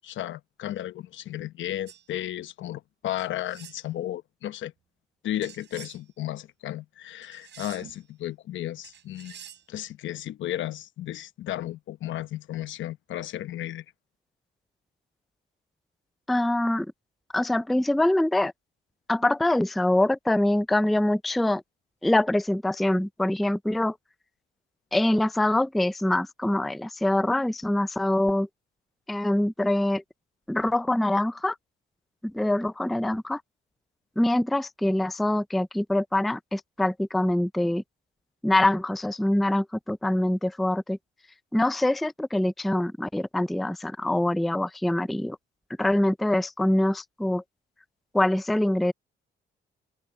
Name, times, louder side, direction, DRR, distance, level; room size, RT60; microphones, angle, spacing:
voice 1, 0.0-4.7 5.2-9.4 9.7-13.8, left 13 dB, 75° left, 0.9 m, -34 dB
sound 1, 1.9-2.0 3.2-3.8 5.4-6.0 7.2-8.0 8.8-9.6, right 9 dB, 60° right, 7.2 m, -47 dB
voice 2, 16.3-16.9 17.3-18.5 19.1-21.6 22.0-24.0 24.9-28.5 29.1-30.0 30.5-31.6 32.2-33.4 34.2-37.8 38.4-41.0 41.5-45.4 45.8-47.4 48.1-48.9, left 1 dB, ahead, 0.4 m, -24 dB
cardioid pair, 90°, 20 cm